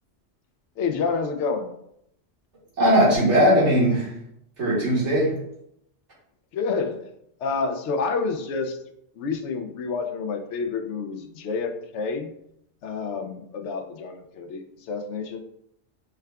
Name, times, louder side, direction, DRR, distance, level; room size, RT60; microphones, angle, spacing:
voice 1, 0.8-1.7 6.5-7.0 7.4-8.8 9.2-12.3 12.8-15.4, left 4 dB, 80° left, 6 dB, 0.9 m, -28 dB
voice 2, 2.8-4.1 4.6-5.4, equal, 80° right, -6 dB, 1.8 m, -19 dB
4.6 x 2.3 x 3.3 m, 0.75 s
omnidirectional pair, 1.2 m